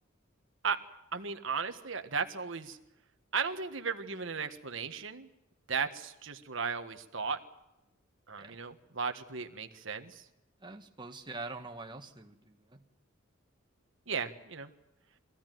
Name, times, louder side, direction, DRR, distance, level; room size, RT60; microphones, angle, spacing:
voice 1, 1.1-2.8 3.3-5.3 5.7-7.4 8.3-10.2 14.1-14.7, right 5 dB, 65° right, 7 dB, 1.6 m, -35 dB
voice 2, 10.6-12.8, right 3 dB, 25° right, 4 dB, 1.7 m, -44 dB
23.5 x 16.0 x 9.3 m, 0.91 s
head